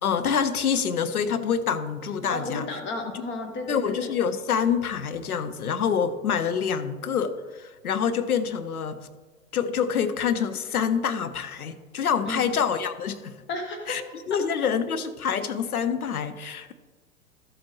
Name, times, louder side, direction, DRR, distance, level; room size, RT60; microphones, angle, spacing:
voice 1, 0.0-2.6 3.7-9.0 9.5-13.4 13.9-14.0 14.3-16.7, left 7 dB, 80° left, 11 dB, 0.9 m, -26 dB
voice 2, 2.3-4.1 12.2-12.5 13.5-14.0 14.3-14.4, left 2 dB, 25° left, 4 dB, 1.3 m, -33 dB
13.0 x 7.7 x 3.1 m, 1.3 s
figure-of-eight pair, 105°, 43 cm